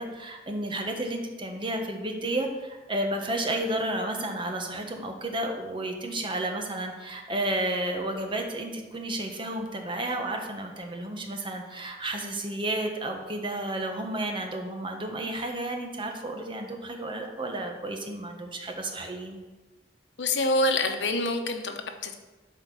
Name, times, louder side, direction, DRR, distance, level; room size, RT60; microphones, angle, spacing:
voice 1, 0.0-19.4, right 1 dB, 30° right, 3 dB, 1.2 m, -32 dB
voice 2, 20.2-22.1, left 2 dB, 90° left, 6 dB, 1.0 m, -26 dB
12.0 x 4.5 x 6.0 m, 1.2 s
head